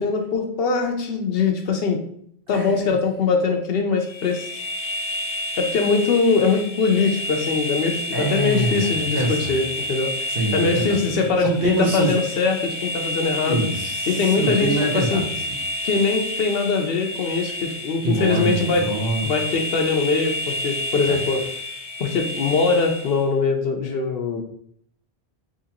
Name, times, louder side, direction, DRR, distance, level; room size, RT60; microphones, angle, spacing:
voice 1, 0.0-2.0 2.5-4.5 5.6-13.7 14.1-15.2 15.8-18.9 19.2-21.4 22.0-24.4, left 4 dB, 70° left, 4 dB, 0.8 m, -22 dB
voice 2, 2.5-3.0 8.1-9.7 10.3-12.1 13.4-15.6 18.0-19.3 21.0-21.3, right 2 dB, 65° right, 0 dB, 1.1 m, -25 dB
sound 1, 4.0-23.3, left 1 dB, 45° left, 0.4 m, -30 dB
3.8 x 2.8 x 2.8 m, 0.65 s
omnidirectional pair, 1.1 m